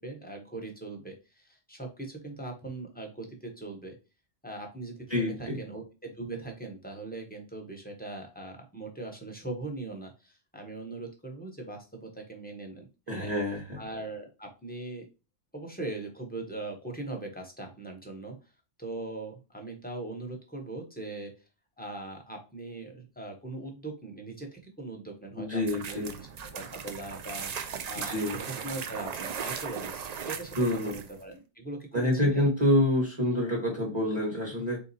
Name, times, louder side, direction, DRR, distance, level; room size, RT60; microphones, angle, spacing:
voice 1, 0.0-3.9 4.4-13.3 13.8-15.1 15.5-18.4 18.8-21.3 21.8-26.3 26.5-27.5 27.8-32.5, right 2 dB, 10° left, 2 dB, 0.8 m, -40 dB
voice 2, 5.1-5.6 13.1-13.8 25.4-26.1 28.0-28.4 30.6-31.0 31.9-34.8, left 1 dB, 25° right, -2 dB, 1.2 m, -27 dB
sound 1, 25.6-31.2, right 7 dB, 60° right, 0.4 m, -38 dB
3.7 x 2.8 x 4.1 m, 0.30 s
omnidirectional pair, 1.2 m